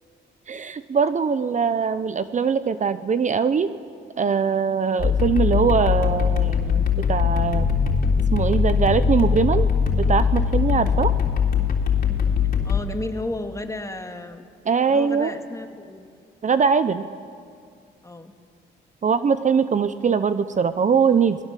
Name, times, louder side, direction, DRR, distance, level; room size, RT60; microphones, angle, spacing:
voice 1, 0.5-3.7 4.2-7.7 8.3-11.1 14.7-15.3 16.4-17.0 19.0-21.4, right 6 dB, 40° right, 12 dB, 0.8 m, -22 dB
sound 1, 5.0-12.8, left 6 dB, 45° left, 3.5 m, -21 dB
voice 2, 12.6-14.5 14.9-16.1 18.0-18.3, left 2 dB, 15° left, 6 dB, 2.1 m, -33 dB
29.0 x 20.5 x 7.6 m, 2.2 s
cardioid pair, 90°, 20 cm